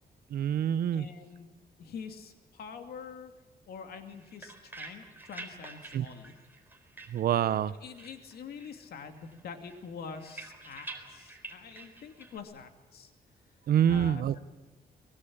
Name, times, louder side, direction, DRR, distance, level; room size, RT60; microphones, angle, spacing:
voice 1, 0.3-1.1 5.9-6.1 7.1-7.7 13.7-14.4, right 9 dB, 70° right, 16 dB, 0.9 m, -26 dB
voice 2, 0.9-3.3 3.7-6.3 7.7-13.1 13.9-14.2, left 6 dB, 75° left, 6 dB, 2.6 m, -45 dB
sound 1, 4.0-7.7 8.0-8.8 9.1-12.4, right 3 dB, 10° right, 3.9 m, -48 dB
23.0 x 21.0 x 8.7 m, 1.1 s
cardioid pair, 120°, 16 cm